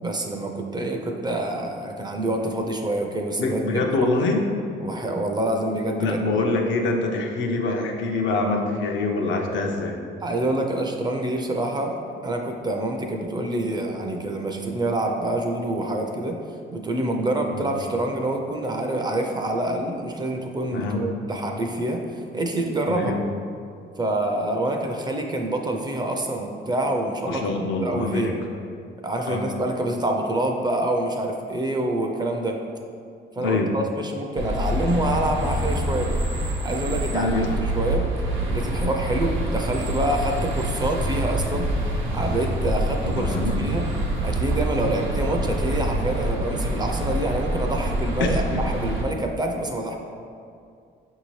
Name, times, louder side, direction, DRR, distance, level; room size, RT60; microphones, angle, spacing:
voice 1, 0.0-4.1 4.8-6.2 10.2-12.0 12.2-16.4 16.7-23.2 24.0-27.4 27.8-28.4 29.0-32.6 33.3-36.1 36.6-38.1 38.5-41.7 42.1-43.9 44.2-50.0, right 1 dB, 20° right, 2 dB, 0.4 m, -26 dB
voice 2, 3.4-4.4 6.0-10.0 20.7-21.0 22.9-23.2 27.3-28.3 29.3-29.4 33.4-33.7 37.1-37.5 43.1-43.8 48.2-48.6, left 3 dB, 70° left, 2 dB, 0.6 m, -25 dB
sound 1, 34.4-49.0, right 1 dB, 80° right, 0.8 m, -26 dB
5.6 x 2.7 x 3.1 m, 2.4 s
cardioid pair, 90°, 20 cm